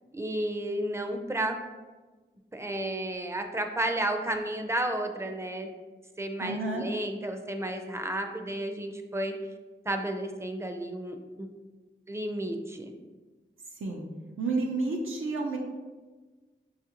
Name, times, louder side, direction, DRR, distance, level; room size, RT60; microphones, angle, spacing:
voice 1, 0.1-1.6 2.5-5.7 6.2-9.3 9.9-11.5 12.1-12.9, right 1 dB, 15° right, 5 dB, 0.4 m, -32 dB
voice 2, 6.4-6.9 13.8-14.1 14.4-15.6, right 3 dB, 90° right, -2 dB, 0.5 m, -30 dB
5.5 x 2.4 x 2.9 m, 1.3 s
wide cardioid pair, 60°, 21 cm